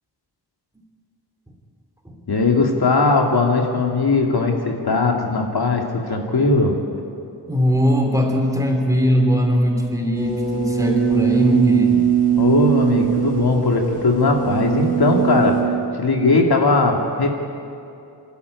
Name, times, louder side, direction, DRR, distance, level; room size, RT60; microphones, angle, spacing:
voice 1, 2.3-6.8 12.4-15.7 16.0-17.3, left 3 dB, 65° left, 1 dB, 2.5 m, -19 dB
voice 2, 7.5-12.0, equal, 10° right, 1 dB, 3.1 m, -20 dB
sound 1, 10.1-15.6, right 8 dB, 20° left, 5.3 m, -20 dB
25.0 x 13.0 x 9.7 m, 2.7 s
wide cardioid pair, 135°, 41 cm